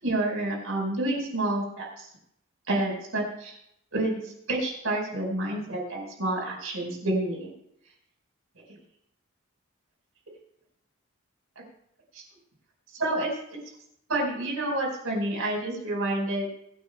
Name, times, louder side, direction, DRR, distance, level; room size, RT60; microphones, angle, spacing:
voice 1, 0.0-2.1 2.7-3.6 3.9-7.5 12.1-12.2 12.9-13.3 14.1-16.5, right 1 dB, 85° right, -1 dB, 4.9 m, -29 dB
24.5 x 9.7 x 2.3 m, 0.76 s
head